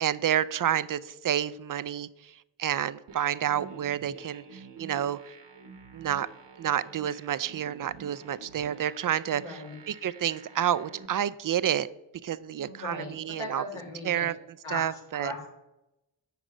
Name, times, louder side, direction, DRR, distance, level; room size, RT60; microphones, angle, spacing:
voice 1, 0.0-2.3 2.6-5.2 5.9-6.3 6.6-9.6 9.9-11.9 12.2-13.6 14.0-14.3 14.7-15.3, right 10 dB, 45° right, 0.4 m, -29 dB
sound 1, 3.1-11.1, right 5 dB, 65° right, 1.2 m, -49 dB
voice 2, 9.3-9.8 12.6-14.3 14.6-15.4, left 1 dB, 80° left, 2.0 m, -39 dB
8.1 x 5.1 x 4.9 m
cardioid pair, 45°, 47 cm